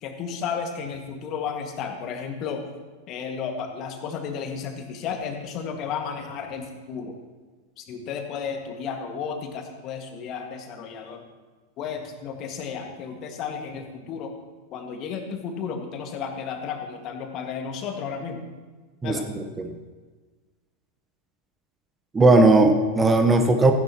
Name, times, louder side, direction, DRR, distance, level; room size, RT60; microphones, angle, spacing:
voice 1, 0.0-2.6 3.1-7.1 7.8-11.2 11.8-14.3 14.7-18.4 19.0-19.3, left 6 dB, 35° left, 4 dB, 1.9 m, -33 dB
voice 2, 19.0-19.7 22.1-23.7, right 2 dB, 15° right, 6 dB, 1.0 m, -18 dB
16.5 x 15.5 x 3.0 m, 1.3 s
figure-of-eight pair, 90°, 0 cm